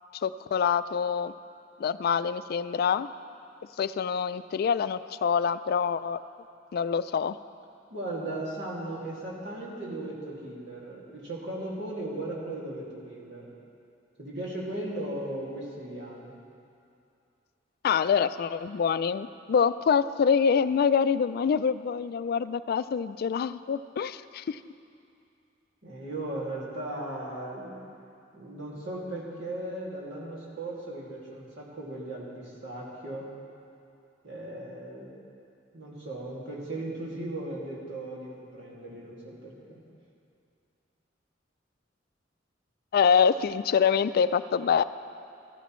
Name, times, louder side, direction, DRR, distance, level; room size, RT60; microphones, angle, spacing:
voice 1, 0.2-1.3 1.8-3.1 3.8-6.2 6.7-7.4 17.8-24.6 42.9-44.8, left 6 dB, 55° left, 14 dB, 0.3 m, -25 dB
voice 2, 7.9-13.5 14.2-16.4 25.8-27.7 28.3-33.3 34.2-35.1 35.7-39.8, right 1 dB, 65° right, -4 dB, 2.3 m, -37 dB
14.5 x 14.0 x 3.1 m, 2.5 s
head